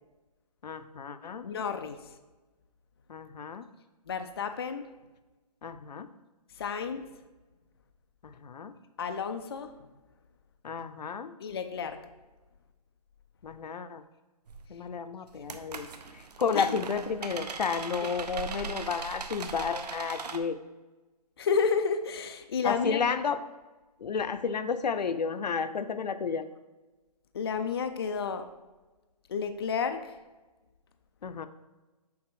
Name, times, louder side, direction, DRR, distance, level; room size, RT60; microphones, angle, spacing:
voice 1, 0.6-1.4 3.1-3.7 5.6-6.1 8.2-8.7 10.6-11.3 13.4-14.0 14.7-15.9 16.1-20.6 22.6-23.4 24.0-26.4 31.2-31.5, left 6 dB, 90° left, 11 dB, 0.6 m, -32 dB
voice 2, 1.4-2.1 4.1-4.9 6.6-7.1 9.0-9.7 11.4-12.1 16.5-16.7 18.0-18.1 21.4-23.0 27.3-28.5 29.3-30.2, left 6 dB, 40° left, 8 dB, 0.4 m, -31 dB
sound 1, 14.5-14.6 15.3-20.4, right 5 dB, 75° right, 0.8 m, -39 dB
7.1 x 4.3 x 4.8 m, 1.2 s
hypercardioid pair, 170°, 21 cm